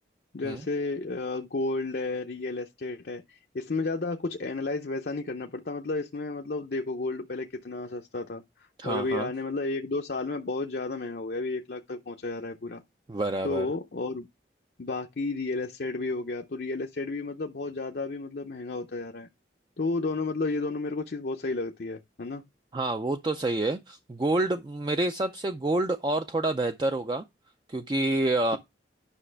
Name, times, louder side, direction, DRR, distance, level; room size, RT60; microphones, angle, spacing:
voice 1, 0.3-12.8 13.4-14.3 14.8-19.3 19.8-22.4, left 3 dB, 60° left, 0.6 m, -32 dB
voice 2, 8.8-9.3 13.1-13.7 22.7-27.2 27.7-28.6, right 2 dB, 25° right, 0.4 m, -28 dB
9.7 x 5.8 x 3.3 m
head